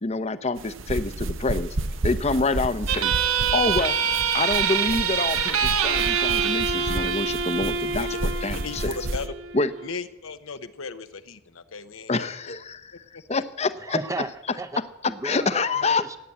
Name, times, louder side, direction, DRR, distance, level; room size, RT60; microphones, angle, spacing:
voice 1, 0.0-1.8 2.0-3.1 3.5-4.0 4.3-8.1 8.4-8.9 9.5-9.7 12.1-12.9 13.3-14.0 15.2-16.2, left 3 dB, 30° left, 13 dB, 0.8 m, -26 dB
sound 1, 0.6-9.3, right 2 dB, 65° right, 0.9 m, -32 dB
sound 2, 2.9-9.9, right 7 dB, 90° right, 1.6 m, -25 dB
voice 2, 8.5-9.3 9.8-12.3 13.1-13.4, left 4 dB, 70° left, 11 dB, 0.9 m, -36 dB
voice 3, 13.8-16.2, right 2 dB, 15° right, 8 dB, 0.7 m, -35 dB
17.0 x 9.3 x 8.6 m, 0.94 s
head